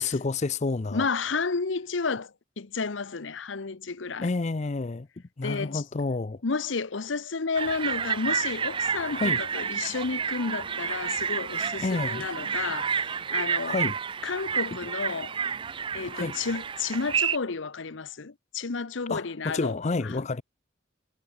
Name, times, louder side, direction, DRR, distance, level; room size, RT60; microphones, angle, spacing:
voice 1, 0.0-1.0 4.2-5.1 5.4-6.4 9.1-9.4 11.8-12.3 13.6-14.0 14.7-14.8 16.1-16.3 19.1-20.4, left 3 dB, 35° left, 0.5 m, -29 dB
voice 2, 0.9-4.3 5.4-5.8 6.4-13.8 14.2-15.4 15.9-19.8, left 4 dB, 70° left, 0.9 m, -31 dB
sound 1, 7.5-17.4, right 6 dB, 25° right, 0.3 m, -30 dB
head